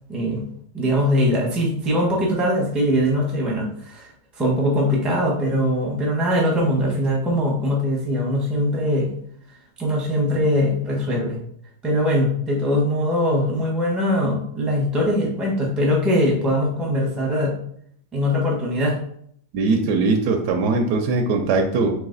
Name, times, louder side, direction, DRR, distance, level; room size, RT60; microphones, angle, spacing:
voice 1, 0.1-0.4 0.7-4.1 4.4-9.1 9.8-11.4 11.8-17.6 18.1-19.0, equal, ahead, -3 dB, 0.6 m, -21 dB
voice 2, 19.5-21.9, right 3 dB, 70° right, 3 dB, 1.1 m, -20 dB
4.0 x 2.9 x 3.8 m, 0.66 s
omnidirectional pair, 1.9 m